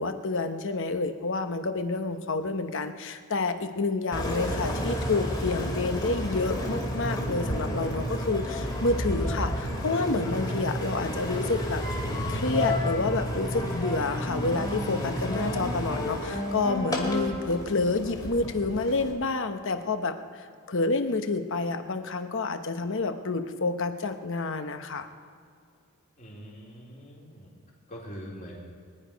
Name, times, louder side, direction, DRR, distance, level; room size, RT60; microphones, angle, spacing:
voice 1, 0.0-11.8 12.3-25.1, left 3 dB, 60° left, 8 dB, 1.0 m, -29 dB
Engine, 4.1-19.1, equal, 20° left, 2.4 m, -31 dB
voice 2, 26.2-27.5 27.9-28.6, equal, 35° left, -3 dB, 3.6 m, -43 dB
23.5 x 10.0 x 5.2 m, 2.3 s
head